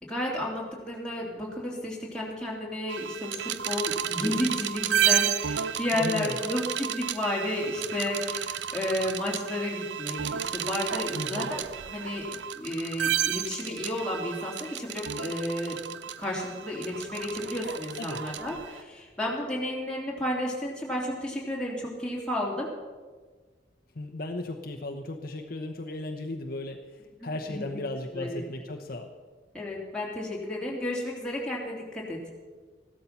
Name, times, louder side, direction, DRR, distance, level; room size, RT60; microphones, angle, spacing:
voice 1, 0.0-15.8 16.2-22.7 27.2-27.8 28.1-28.4 29.5-32.2, left 1 dB, 5° left, -4 dB, 3.2 m, -32 dB
sound 1, 2.9-18.8, right 9 dB, 75° right, 0.6 m, -32 dB
voice 2, 5.9-6.4 11.1-11.5 18.0-18.2 23.9-29.1, left 2 dB, 55° left, 3 dB, 1.0 m, -36 dB
14.5 x 12.5 x 5.8 m, 1.4 s
head